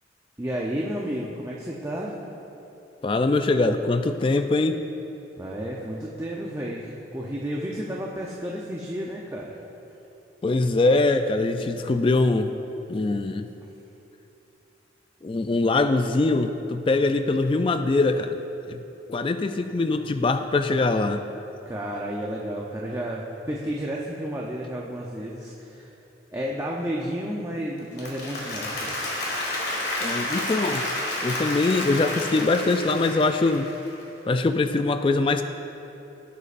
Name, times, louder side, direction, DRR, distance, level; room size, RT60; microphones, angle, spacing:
voice 1, 0.4-2.1 5.4-9.6 21.7-25.9 26.3-29.0, equal, 15° right, -3 dB, 0.6 m, -32 dB
voice 2, 3.0-4.8 10.4-12.5 12.9-13.5 15.2-18.4 18.7-18.8 19.1-21.2 30.0-30.9 31.2-33.7 34.3-35.4, left 3 dB, 30° left, 8 dB, 0.3 m, -23 dB
Applause, 27.8-34.0, left 1 dB, 60° left, 1.9 m, -30 dB
17.0 x 8.2 x 2.5 m, 3.0 s
head